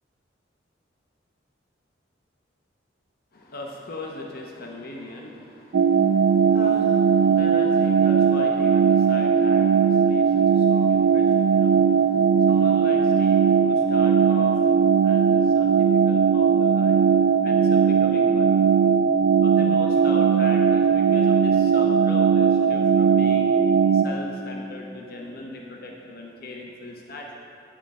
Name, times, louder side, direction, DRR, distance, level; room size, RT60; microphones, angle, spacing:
voice 1, 3.3-18.6 19.4-23.5 23.9-27.4, left 1 dB, 50° left, 0 dB, 0.7 m, -39 dB
sound 1, 5.7-24.0, right 6 dB, 75° right, 0.4 m, -19 dB
9.9 x 7.5 x 4.1 m, 2.7 s
head